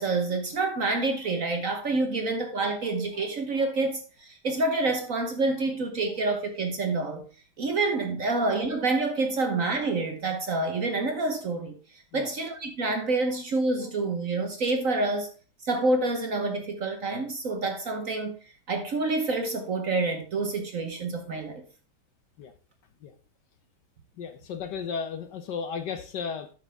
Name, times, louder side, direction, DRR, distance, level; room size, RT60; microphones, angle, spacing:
voice 1, 0.0-7.2 7.6-11.8 12.1-15.3 15.6-18.4 18.7-21.6, right 3 dB, 50° right, 1.2 m, -27 dB
voice 2, 24.2-26.5, left 6 dB, 65° left, 1.2 m, -34 dB
9.1 x 6.6 x 3.4 m
omnidirectional pair, 2.3 m